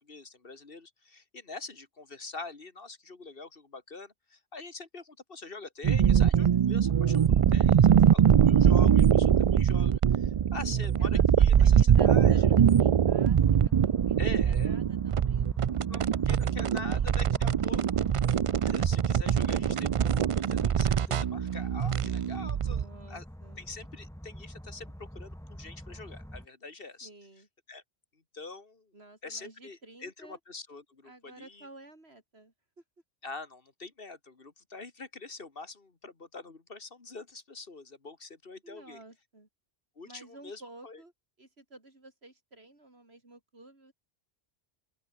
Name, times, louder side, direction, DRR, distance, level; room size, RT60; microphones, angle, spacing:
voice 1, 0.0-12.5 14.2-14.8 15.9-17.8 18.6-22.8 23.1-23.2 23.6-27.1 27.7-27.8 28.1-28.9 29.2-31.7 33.2-39.0 40.0-41.0, left 3 dB, 60° left, 2.3 m, -45 dB
sound 1, 5.8-22.8, right 8 dB, 55° right, 0.3 m, -23 dB
voice 2, 10.6-17.4 22.6-23.6 27.0-27.5 28.9-30.4 31.0-32.5 38.6-39.5 40.0-41.1 41.4-43.9, right 2 dB, 75° right, 4.8 m, -53 dB
sound 2, 13.2-26.5, equal, 5° left, 1.4 m, -47 dB
open air
omnidirectional pair, 1.1 m